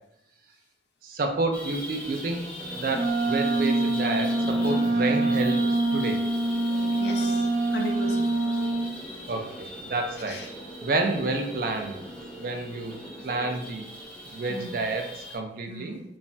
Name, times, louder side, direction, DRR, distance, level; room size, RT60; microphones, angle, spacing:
voice 1, 1.0-2.4 2.8-5.6 5.9-6.2 9.3-10.4 10.8-12.0 12.4-13.0 13.2-13.9 14.3-16.0, right 3 dB, 50° right, 4 dB, 0.3 m, -29 dB
sound 1, 1.5-15.4, equal, 5° left, 0.6 m, -39 dB
Wind instrument woodwind instrument, 2.9-8.9, right 2 dB, 65° right, 0.8 m, -25 dB
voice 2, 7.0-8.4 10.3-10.5 11.0-11.2 14.5-14.8 15.7-16.0, left 2 dB, 75° left, 3 dB, 0.5 m, -37 dB
3.1 x 2.1 x 2.6 m, 0.80 s
head